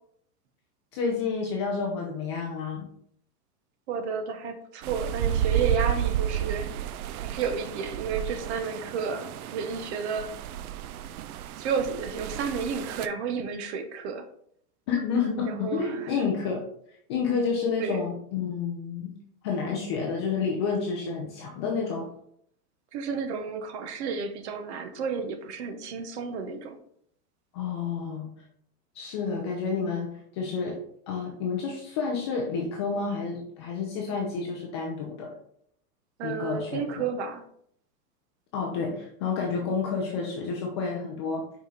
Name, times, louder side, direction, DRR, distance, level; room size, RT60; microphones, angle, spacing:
voice 1, 0.9-2.9 14.9-16.6 17.1-19.1 19.4-22.1 27.5-28.3 28.9-30.8 31.1-35.3 36.2-37.0 38.5-41.4, left 5 dB, 20° left, -1 dB, 0.4 m, -30 dB
voice 2, 3.9-6.7 7.2-10.3 11.6-14.3 15.4-16.1 17.8-18.0 22.9-26.8 36.2-37.4, right 5 dB, 45° right, 8 dB, 0.9 m, -31 dB
sound 1, 4.8-13.1, right 11 dB, 70° right, 0.6 m, -31 dB
5.4 x 5.0 x 3.9 m, 0.68 s
supercardioid pair, 155°, 46 cm